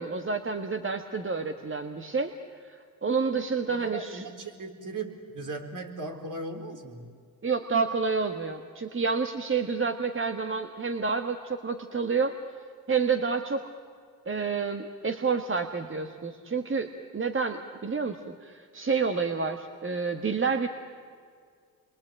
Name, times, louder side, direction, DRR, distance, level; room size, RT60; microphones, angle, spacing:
voice 1, 0.0-4.2 7.4-12.3 12.9-13.6 14.2-20.7, right 5 dB, 30° right, 7 dB, 1.5 m, -29 dB
voice 2, 3.7-7.1, right 3 dB, 50° right, 3 dB, 4.2 m, -37 dB
29.0 x 23.0 x 8.9 m, 2.1 s
supercardioid pair, 65°, 41 cm